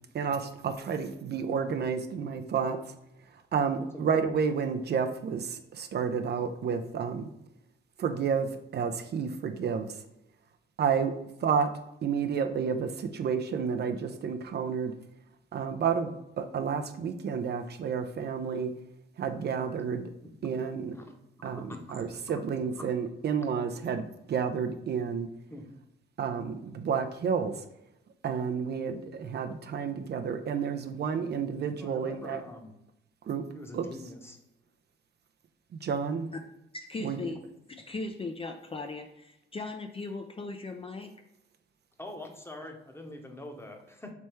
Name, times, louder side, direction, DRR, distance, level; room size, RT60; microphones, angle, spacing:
voice 1, 0.1-2.8 3.5-7.3 8.0-9.9 10.8-11.1 11.4-11.7 12.0-14.9 15.5-18.7 19.2-20.1 20.4-21.0 21.4-25.3 26.2-27.6 28.2-32.4 33.3-33.4 33.7-33.9 35.7-36.3 37.0-37.3, right 6 dB, 50° right, 7 dB, 0.5 m, -30 dB
voice 2, 21.4-22.4 22.8-22.9 25.5-25.6 31.8-32.7 33.5-34.4 42.0-44.1, left 1 dB, 10° left, 3 dB, 0.9 m, -44 dB
voice 3, 36.7-37.4 37.7-41.1, left 3 dB, 25° left, 5 dB, 0.4 m, -38 dB
3.4 x 3.1 x 4.4 m, 0.86 s
cardioid pair, 75°, 21 cm